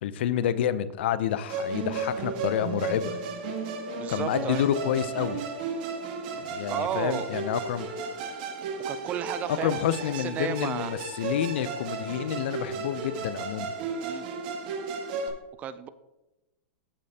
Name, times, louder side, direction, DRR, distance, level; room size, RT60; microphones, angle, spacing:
voice 1, 0.0-3.2 4.1-5.4 6.4-7.9 9.5-13.7, left 10 dB, 65° left, 15 dB, 0.6 m, -29 dB
Musical instrument, 1.5-15.3, right 4 dB, 50° right, 1.6 m, -34 dB
voice 2, 4.0-4.7 6.7-7.5 8.9-10.9 14.0-14.3 15.6-15.9, right 9 dB, 25° right, 14 dB, 0.3 m, -33 dB
14.5 x 5.2 x 2.8 m, 1.0 s
supercardioid pair, 150°, 6 cm